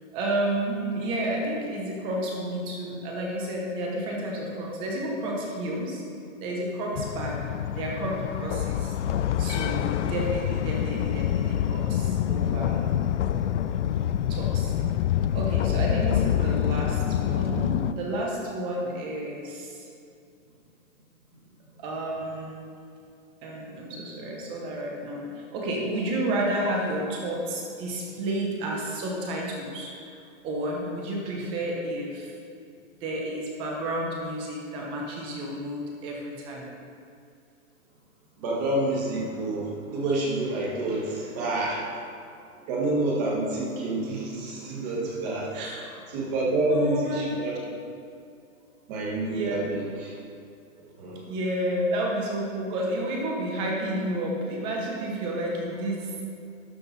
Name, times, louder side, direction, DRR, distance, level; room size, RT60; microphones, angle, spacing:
voice 1, 0.1-6.0 6.4-7.4 7.7-8.9 9.4-12.9 14.3-14.8 15.3-19.9 21.8-22.6 23.4-30.1 30.4-32.3 33.0-36.7 40.9-41.0 45.5-46.0 46.7-47.3 49.3-49.7 51.3-56.2, right 1 dB, 15° right, -2 dB, 0.7 m, -31 dB
sound 1, 6.9-17.9, left 10 dB, 60° left, 0.5 m, -26 dB
voice 2, 38.4-41.8 42.7-45.5 46.1-47.6 48.9-50.2 50.8-51.2, right 2 dB, 30° right, -4 dB, 1.8 m, -28 dB
11.5 x 5.9 x 4.0 m, 2.5 s
hypercardioid pair, 160°, 40 cm